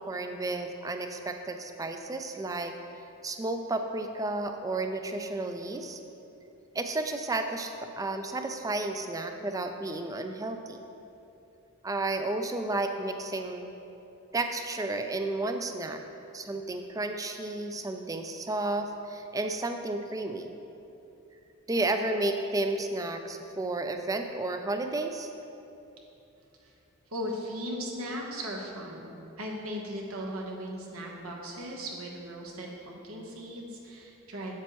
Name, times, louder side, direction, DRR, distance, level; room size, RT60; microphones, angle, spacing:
voice 1, 0.0-2.7 3.2-6.0 6.7-10.8 11.8-13.7 14.3-16.0 16.3-20.5 21.7-25.3, right 2 dB, 15° right, 6 dB, 0.4 m, -32 dB
voice 2, 27.1-34.6, equal, 80° right, -1 dB, 1.1 m, -38 dB
8.2 x 7.5 x 3.0 m, 2.9 s
head